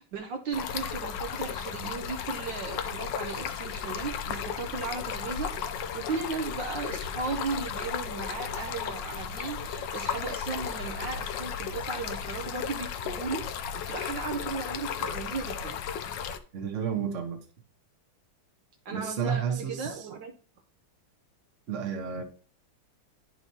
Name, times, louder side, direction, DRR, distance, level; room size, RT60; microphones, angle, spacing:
voice 1, 0.1-15.8 18.8-20.3, right 4 dB, 70° right, 3 dB, 1.3 m, -36 dB
Stream, 0.5-16.4, left 7 dB, 70° left, 1.2 m, -35 dB
voice 2, 16.5-17.4 18.9-20.1 21.7-22.2, right 7 dB, 45° right, 3 dB, 1.3 m, -31 dB
10.5 x 4.6 x 2.8 m, 0.40 s
omnidirectional pair, 2.3 m